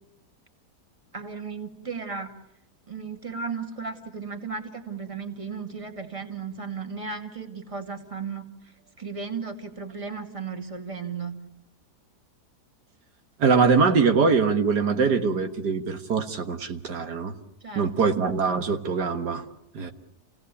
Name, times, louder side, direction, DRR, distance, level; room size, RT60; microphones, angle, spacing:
voice 1, 1.1-2.3 2.9-8.4 9.0-11.4 17.6-18.1, right 5 dB, 20° right, 4 dB, 2.3 m, -35 dB
voice 2, 13.4-17.3 17.8-19.4 19.7-19.9, right 5 dB, 85° right, 5 dB, 2.1 m, -23 dB
29.5 x 17.5 x 8.4 m, 0.83 s
omnidirectional pair, 1.7 m